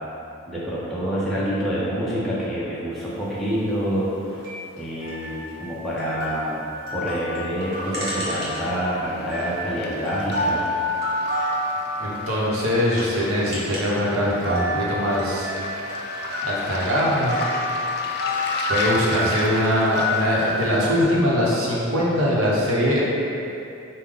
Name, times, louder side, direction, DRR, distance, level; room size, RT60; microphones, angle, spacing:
voice 1, 0.5-4.1 4.8-6.6 6.9-10.6, equal, ahead, -10 dB, 0.6 m, -27 dB
sound 1, 4.3-8.9 9.2-14.0 14.3-20.7, left 1 dB, 45° right, 1.0 m, -29 dB
Waves surf, 9.0-21.0, left 3 dB, 50° left, 0.3 m, -36 dB
voice 2, 12.0-15.5 16.4-17.4 18.7-23.0, equal, 75° right, -6 dB, 0.9 m, -22 dB
5.0 x 2.2 x 3.7 m, 2.7 s
head